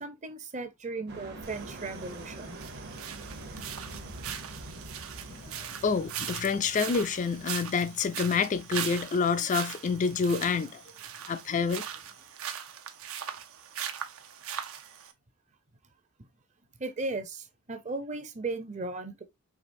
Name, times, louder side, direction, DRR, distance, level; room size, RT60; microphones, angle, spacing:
voice 1, 0.0-2.6 16.8-19.2, right 3 dB, 35° right, 0.7 m, -36 dB
sound 1, 1.1-7.6, right 2 dB, 50° right, 1.0 m, -45 dB
sound 2, 1.4-15.1, right 9 dB, 75° right, 0.7 m, -40 dB
voice 2, 5.3-10.8 11.3-11.8, left 5 dB, 35° left, 0.3 m, -28 dB
4.8 x 3.3 x 2.6 m
head